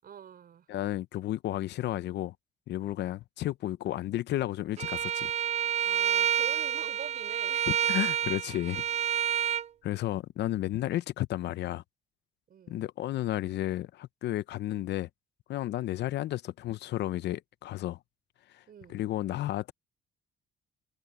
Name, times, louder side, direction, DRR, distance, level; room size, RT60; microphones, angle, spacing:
voice 1, 0.0-0.7 5.8-7.9 12.5-12.9 18.7-19.1, right 8 dB, 55° right, 5.2 m, -45 dB
voice 2, 0.7-2.3 2.7-5.3 7.9-8.8 9.8-11.8 12.7-15.1 15.5-18.0 18.5-18.6 18.9-19.7, left 14 dB, 70° left, 0.7 m, -32 dB
Bowed string instrument, 4.8-9.7, right 10 dB, 40° right, 0.4 m, -29 dB
cardioid pair, 100°, 18 cm